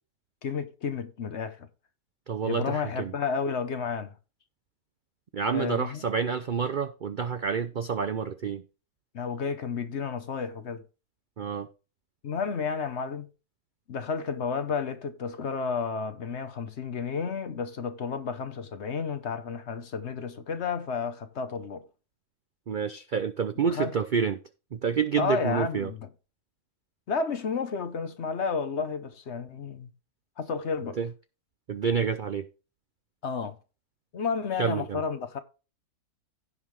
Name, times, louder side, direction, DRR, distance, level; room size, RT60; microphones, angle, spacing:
voice 1, 0.4-1.7 2.4-4.2 5.5-6.1 9.1-10.8 12.2-13.3 13.9-21.9 23.7-23.9 25.2-26.1 27.1-29.9 30.4-31.0 33.2-33.5 34.1-35.4, left 5 dB, 55° left, 1.0 m, -31 dB
voice 2, 2.3-3.1 5.3-8.6 11.4-11.7 22.7-24.4 24.7-25.9 31.0-31.1 31.7-32.5 34.6-35.0, right 6 dB, 60° right, 0.5 m, -28 dB
16.0 x 5.5 x 3.2 m
omnidirectional pair, 1.6 m